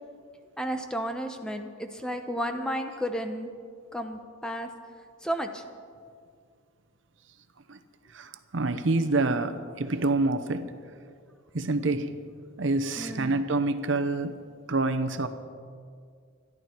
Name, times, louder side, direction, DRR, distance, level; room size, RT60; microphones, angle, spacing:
voice 1, 0.6-3.5 3.9-4.7 5.2-5.6 13.0-13.4, equal, 5° left, 5 dB, 0.8 m, -32 dB
voice 2, 8.1-10.7 11.5-12.1 12.6-14.4 14.7-15.3, right 2 dB, 60° right, 8 dB, 0.8 m, -27 dB
25.5 x 11.0 x 4.5 m, 2.2 s
head